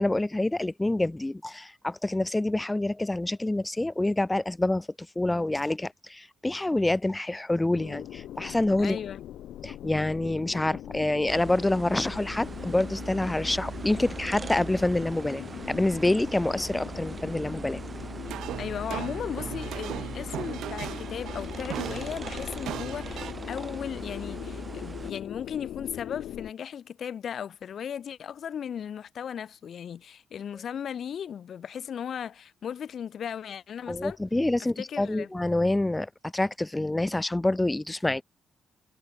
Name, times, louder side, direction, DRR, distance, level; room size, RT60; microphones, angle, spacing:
voice 1, 0.0-4.9 5.2-9.0 9.6-17.8 33.9-38.2, left 2 dB, 10° left, 0.4 m, -27 dB
sound 1, 7.7-26.5, left 12 dB, 80° left, 7.0 m, -41 dB
voice 2, 8.7-9.2 18.6-34.2 34.8-35.3, left 8 dB, 45° left, 1.1 m, -36 dB
sound 2, 11.3-25.1, right 4 dB, 20° right, 0.8 m, -40 dB
sound 3, 18.3-23.3, right 12 dB, 85° right, 0.6 m, -38 dB
cardioid pair, 175°, 0 cm